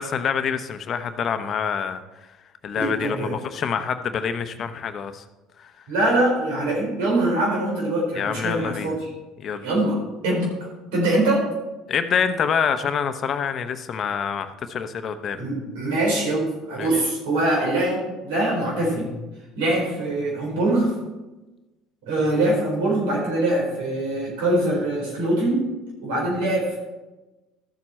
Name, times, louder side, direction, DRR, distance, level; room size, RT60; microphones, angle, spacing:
voice 1, 0.0-2.0 2.6-5.2 5.6-5.7 8.1-9.0 9.4-9.7 11.9-15.4 16.8-16.9, left 7 dB, 50° left, 9 dB, 0.9 m, -26 dB
voice 2, 2.8-3.4 5.9-9.1 9.6-10.5 10.9-11.5 15.4-19.1 19.6-20.9 22.1-25.6 26.0-26.8, right 1 dB, 80° right, -2 dB, 4.3 m, -23 dB
13.0 x 7.5 x 4.3 m, 1.1 s
supercardioid pair, 80°, 0 cm